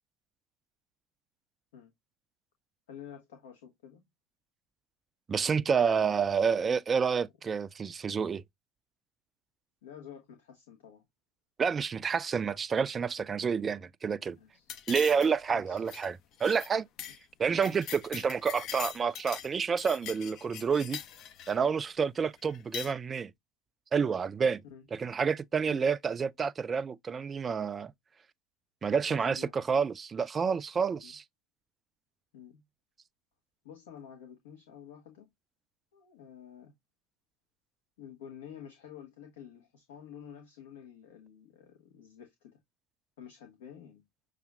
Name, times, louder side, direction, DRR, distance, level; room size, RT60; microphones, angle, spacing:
voice 1, 2.9-4.0 9.8-11.0 14.2-14.7 15.5-15.8 24.7-24.9 25.7-25.9 29.1-29.5 31.0-31.2 32.3-32.6 33.6-35.3 35.9-36.7 38.0-42.6 43.2-44.1, left 8 dB, 75° left, 1.1 m, -50 dB
voice 2, 5.3-8.4 11.6-14.4 14.9-16.2 16.4-16.9 17.4-21.0 21.5-23.3 23.9-24.6 24.9-27.9 28.8-31.2, right 6 dB, 30° right, 0.3 m, -29 dB
sound 1, 14.7-15.5 15.8-16.1 16.4-16.7 17.0-17.2 17.4-19.5 19.8-21.6 22.5-22.9, left 9 dB, 50° left, 0.6 m, -42 dB
6.7 x 2.5 x 2.3 m
hypercardioid pair, 75°, 0 cm